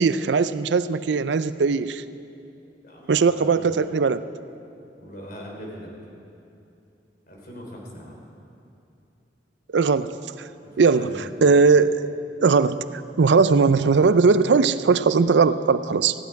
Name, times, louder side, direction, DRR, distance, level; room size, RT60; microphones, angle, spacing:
voice 1, 0.0-2.0 3.1-4.2 9.7-10.1 10.8-12.1 12.4-16.1, right 4 dB, 85° right, 14 dB, 0.5 m, -19 dB
voice 2, 2.8-3.6 5.0-5.9 7.3-8.1 10.8-11.2, equal, 55° left, -2 dB, 3.6 m, -40 dB
19.5 x 15.0 x 4.7 m, 2.7 s
head